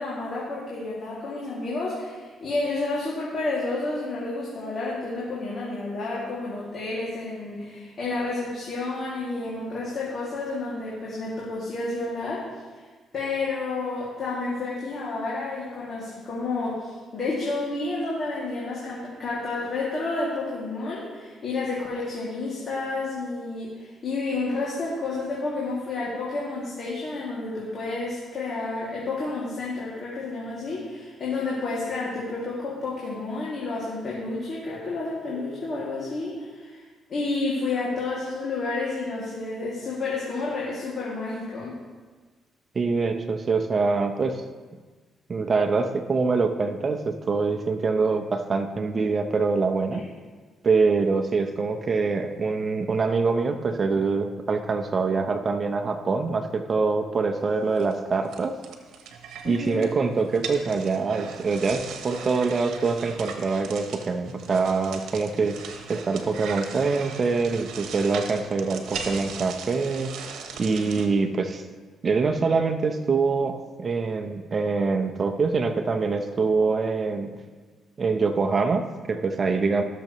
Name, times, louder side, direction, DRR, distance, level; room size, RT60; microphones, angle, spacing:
voice 1, 0.0-12.5 13.1-36.8 37.1-41.7 49.9-50.0 59.4-59.9, left 3 dB, 55° left, -6 dB, 2.4 m, -30 dB
voice 2, 42.7-44.4 45.3-50.0 50.6-58.5 59.4-70.1 70.6-71.6 72.0-77.3 78.0-79.8, right 4 dB, 40° right, 7 dB, 0.8 m, -24 dB
sound 1, 57.4-71.1, right 6 dB, 80° right, 1.1 m, -39 dB
17.0 x 6.8 x 3.1 m, 1.4 s
cardioid pair, 90°, 0 cm